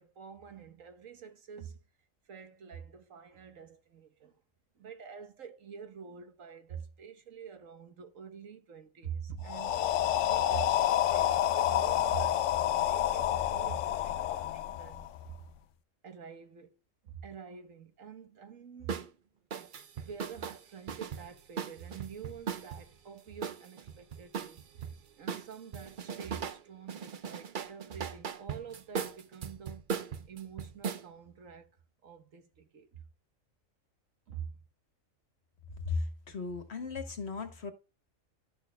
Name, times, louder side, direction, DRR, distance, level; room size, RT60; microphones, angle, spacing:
voice 1, 0.0-1.8 2.3-4.4 4.7-9.8 10.2-15.4 16.0-19.1 19.5-19.7 20.0-29.8 30.3-31.7 32.0-33.0 34.3-34.6, right 7 dB, 75° right, 1.5 m, -46 dB
sound 1, 9.5-15.4, left 12 dB, 70° left, 0.9 m, -29 dB
sound 2, 18.9-19.1 19.5-22.8 23.4-24.9 25.3-26.6 26.9-31.0, right 6 dB, 50° right, 0.7 m, -38 dB
voice 2, 35.8-37.7, left 4 dB, 55° left, 1.5 m, -36 dB
12.0 x 6.4 x 2.2 m
omnidirectional pair, 1.4 m